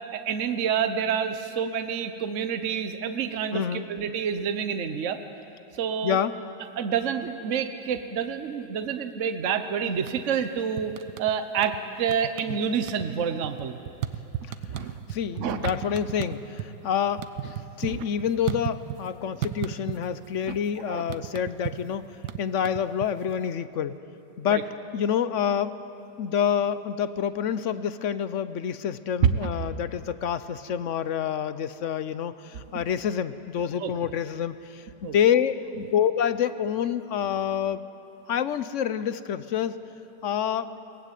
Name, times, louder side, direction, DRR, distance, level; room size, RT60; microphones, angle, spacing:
voice 1, 0.1-5.2 5.8-6.2 6.8-13.8 14.7-15.0 15.4-15.6 17.8-17.9 20.4-20.6 20.9-21.0 24.5-24.6 33.8-33.9 35.0-35.1, right 7 dB, 50° right, 8 dB, 1.2 m, -28 dB
voice 2, 3.5-3.9 6.0-6.3 12.5-12.6 15.1-22.0 22.4-24.0 24.4-25.8 26.2-37.8 38.3-39.8 40.2-40.9, left 8 dB, 60° left, 13 dB, 0.8 m, -27 dB
sound 1, 9.9-10.4 10.8-11.8 12.1-12.6 12.8-16.7 17.0-19.1 19.4-20.3 20.5-23.4, right 11 dB, 85° right, 1.5 m, -34 dB
23.0 x 18.5 x 9.2 m, 3.0 s
omnidirectional pair, 1.9 m